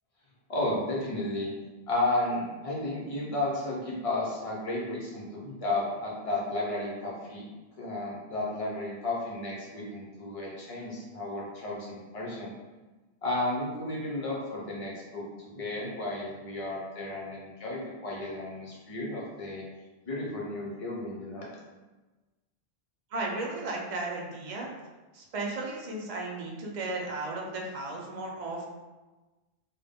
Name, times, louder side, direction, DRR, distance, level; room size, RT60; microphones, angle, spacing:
voice 1, 0.5-1.5 1.9-7.4 7.8-12.5 13.2-19.6 20.1-21.5, left 2 dB, 40° left, -4 dB, 0.6 m, -33 dB
voice 2, 23.1-24.7 25.1-28.7, right 2 dB, 55° right, -1 dB, 0.4 m, -35 dB
2.2 x 2.1 x 3.4 m, 1.2 s
omnidirectional pair, 1.1 m